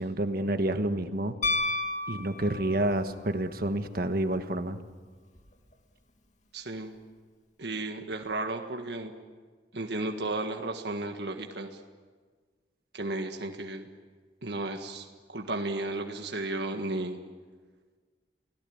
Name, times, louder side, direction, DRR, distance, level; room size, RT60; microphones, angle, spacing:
voice 1, 0.0-1.4 2.1-4.8, right 1 dB, 55° right, 8 dB, 1.4 m, -29 dB
Piano, 1.4-3.0 5.4-5.5, left 2 dB, 45° left, 2.1 m, -30 dB
voice 2, 6.5-6.9 7.6-9.1 9.7-11.8 12.9-13.9 14.4-17.2, right 2 dB, 70° right, 3 dB, 1.7 m, -34 dB
29.0 x 18.0 x 8.8 m, 1.5 s
head